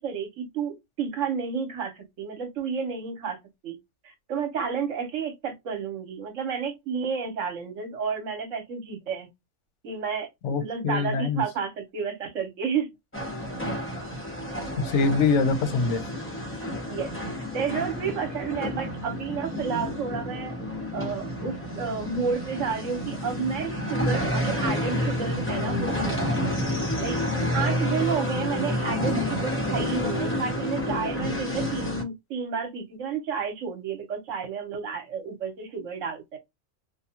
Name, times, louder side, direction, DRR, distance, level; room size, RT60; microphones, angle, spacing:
voice 1, 0.0-3.8 4.0-9.3 9.8-12.9 16.9-17.1 17.5-20.5 20.9-26.6 27.0-27.2 27.5-36.4, right 6 dB, 65° right, 1.2 m, -31 dB
voice 2, 10.4-11.4 14.8-16.0, left 4 dB, 65° left, 0.9 m, -24 dB
sound 1, 13.1-32.0, left 1 dB, 15° left, 0.5 m, -29 dB
2.5 x 2.3 x 2.8 m
omnidirectional pair, 1.4 m